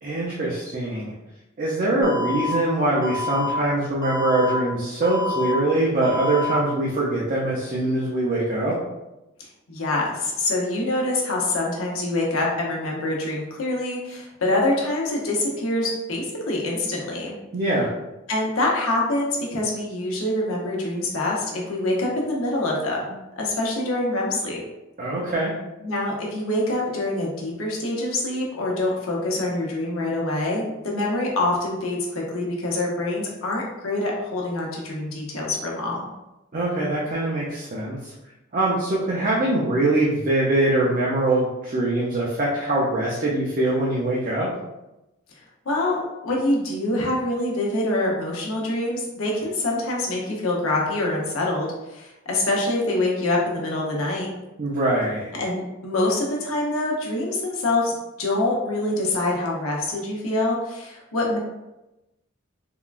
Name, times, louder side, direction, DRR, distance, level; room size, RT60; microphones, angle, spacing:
voice 1, 0.0-1.1 1.6-8.8 17.5-17.9 25.0-25.5 36.5-38.1 38.5-44.5 54.6-55.3, right 2 dB, 40° right, -5 dB, 0.5 m, -23 dB
Alarm, 2.0-2.5 3.0-3.5 4.0-4.5 5.0-5.5 6.0-6.5, left 3 dB, 20° left, 0.6 m, -28 dB
voice 2, 9.7-17.4 18.3-24.6 25.8-36.0 45.6-54.3 55.3-61.4, left 2 dB, 85° left, -2 dB, 0.8 m, -25 dB
3.5 x 2.2 x 2.4 m, 0.97 s
head